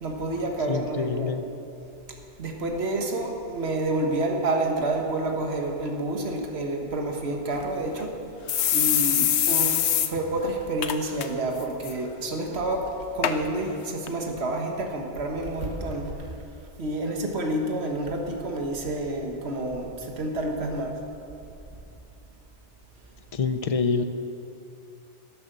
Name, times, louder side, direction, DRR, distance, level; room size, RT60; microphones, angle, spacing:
voice 1, 0.0-1.3 2.4-8.2 8.7-16.4 16.8-21.0, right 2 dB, 65° right, 2 dB, 1.6 m, -29 dB
voice 2, 0.7-1.5 23.3-24.0, left 5 dB, 40° left, 9 dB, 0.6 m, -26 dB
sound 1, 7.5-7.6 8.0-8.1 8.5-10.1 10.4-10.5 10.8-11.3 11.6-11.9 12.6-12.7 13.2-13.4 14.1-14.2, left 9 dB, 75° left, 1.0 m, -23 dB
12.0 x 9.8 x 6.7 m, 2.7 s
omnidirectional pair, 1.2 m